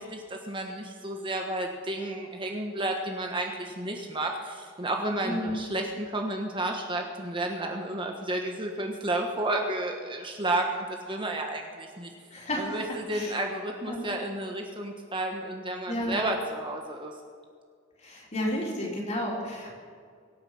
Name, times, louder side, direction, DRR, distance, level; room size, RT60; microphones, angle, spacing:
voice 1, 0.0-12.1 12.6-17.1, right 1 dB, 25° right, 2 dB, 1.2 m, -32 dB
voice 2, 5.2-5.6 12.3-13.4 13.9-14.1 15.9-16.2 18.0-19.8, equal, 35° left, -2 dB, 3.8 m, -32 dB
23.5 x 9.0 x 5.8 m, 2.1 s
head